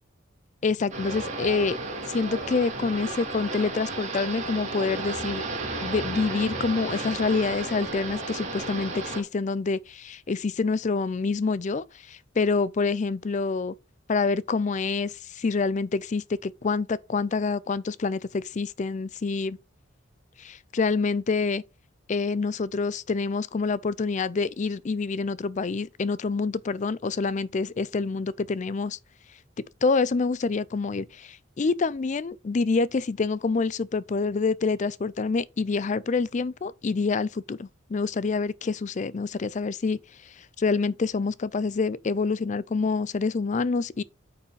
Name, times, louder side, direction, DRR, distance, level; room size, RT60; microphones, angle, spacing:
voice 1, 0.6-1.8 2.1-5.4 5.8-13.7 14.1-19.6 20.4-21.6 22.1-29.0 29.8-40.0 40.6-44.0, left 4 dB, 35° left, 0.4 m, -27 dB
sound 1, 0.9-9.2, right 2 dB, 35° right, 2.7 m, -33 dB
9.0 x 4.9 x 5.1 m
head